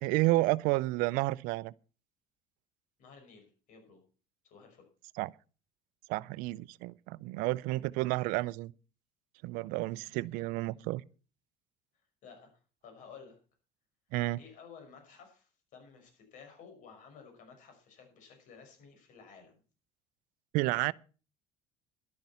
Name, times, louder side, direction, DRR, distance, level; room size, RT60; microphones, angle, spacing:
voice 1, 0.0-1.7 5.2-5.3 6.1-8.7 9.4-11.0 14.1-14.4 20.5-20.9, right 20 dB, 75° right, 0.5 m, -30 dB
voice 2, 3.0-4.0 4.4-4.9 10.1-11.0 12.2-12.5 12.8-13.4 14.4-19.6, left 6 dB, 65° left, 5.5 m, -54 dB
12.0 x 10.5 x 5.6 m
supercardioid pair, 90°, 14 cm